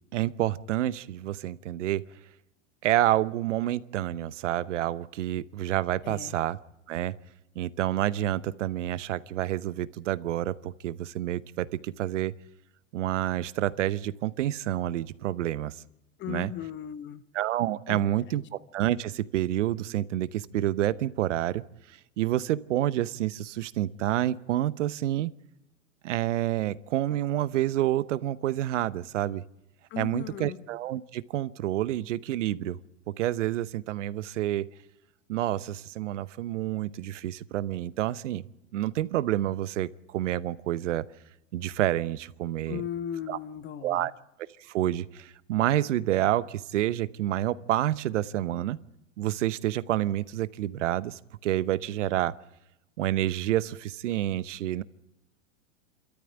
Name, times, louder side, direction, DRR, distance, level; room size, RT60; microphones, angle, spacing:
voice 1, 0.1-2.0 2.8-6.6 6.9-7.2 7.6-12.3 12.9-15.8 16.3-16.5 17.3-21.6 22.2-25.3 26.0-29.4 30.0-32.8 33.1-34.7 35.3-38.4 38.7-41.1 41.5-42.8 43.3-43.4 43.8-44.1 44.7-48.8 49.2-52.3 53.0-54.8, right 13 dB, 75° right, 16 dB, 1.0 m, -28 dB
voice 2, 6.0-6.4 16.2-17.2 17.9-18.5 29.9-30.6 42.7-44.1, left 10 dB, 30° left, 16 dB, 0.9 m, -37 dB
26.5 x 13.5 x 9.1 m, 0.87 s
hypercardioid pair, 115°, 37 cm